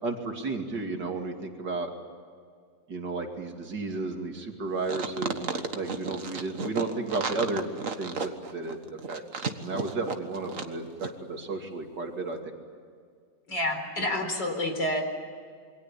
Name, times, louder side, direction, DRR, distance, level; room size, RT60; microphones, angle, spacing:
voice 1, 0.0-1.9 2.9-7.6 8.0-8.8 9.1-12.4, right 3 dB, 75° right, 3 dB, 3.3 m, -33 dB
sound 1, 4.8-10.7 11.0-11.1, right 5 dB, 50° right, 1.8 m, -33 dB
voice 2, 13.5-15.0, left 1 dB, 80° left, 4 dB, 4.9 m, -28 dB
27.5 x 23.5 x 8.6 m, 2.1 s
omnidirectional pair, 1.9 m